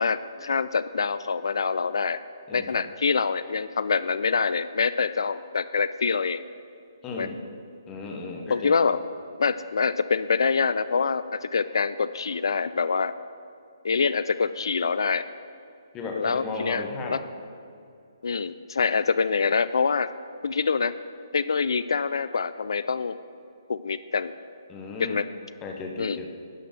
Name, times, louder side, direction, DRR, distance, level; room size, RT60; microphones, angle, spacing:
voice 1, 0.0-2.2 2.5-6.4 7.2-7.3 8.5-9.0 9.4-13.1 13.8-15.3 16.2-16.8 17.1-17.2 18.2-20.1 20.4-20.9 21.3-23.2 23.7-24.3 25.0-25.2 26.0-26.2, left 5 dB, 75° left, 14 dB, 0.3 m, -25 dB
voice 2, 2.5-2.8 7.0-7.4 7.9-8.8 15.9-17.3 24.7-25.2 25.6-26.3, left 3 dB, 10° left, 1 dB, 0.7 m, -35 dB
11.5 x 4.4 x 7.7 m, 2.5 s
hypercardioid pair, 175°, 2 cm